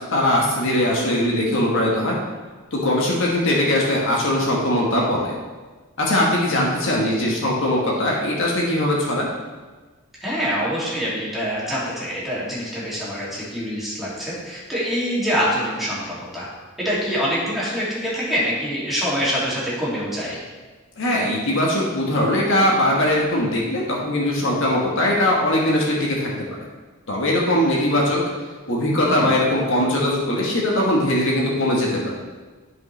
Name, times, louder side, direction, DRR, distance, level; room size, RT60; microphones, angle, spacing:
voice 1, 0.1-2.2 2.7-5.3 6.0-9.3 21.0-26.5 27.1-28.2 28.7-32.1, left 1 dB, 65° left, -3 dB, 1.4 m, -20 dB
voice 2, 10.2-16.5 16.8-20.4 29.1-29.4, equal, ahead, -9 dB, 2.6 m, -25 dB
11.5 x 5.2 x 3.3 m, 1.3 s
head